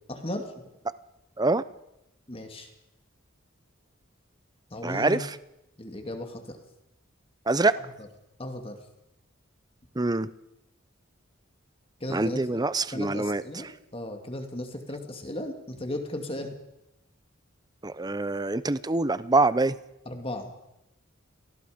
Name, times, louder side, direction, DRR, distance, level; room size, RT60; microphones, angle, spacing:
voice 1, 0.1-0.4 2.3-2.7 4.7-5.2 5.8-6.6 7.8-7.9 8.4-8.8 12.0-12.4 12.9-13.7 13.9-16.6 20.1-20.5, left 1 dB, 30° left, 5 dB, 2.4 m, -35 dB
voice 2, 4.8-5.4 7.5-7.7 10.0-10.3 12.1-13.4 17.8-19.8, right 2 dB, 20° right, 16 dB, 0.6 m, -25 dB
27.0 x 19.0 x 5.2 m, 0.88 s
head